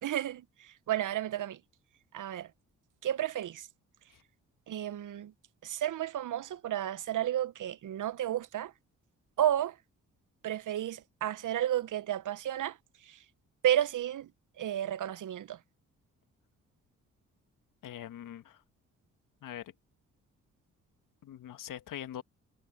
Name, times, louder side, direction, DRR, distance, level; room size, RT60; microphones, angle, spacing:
voice 1, 0.0-1.6 2.1-2.5 3.0-3.7 4.7-5.3 5.6-8.7 9.4-9.7 10.4-12.8 13.1-13.2 13.6-14.3 14.6-15.6, right 11 dB, 65° right, 1.0 m, -32 dB
voice 2, 17.8-18.6 19.4-19.7 21.2-22.2, left 11 dB, 70° left, 1.5 m, -43 dB
supercardioid pair, 55°, 34 cm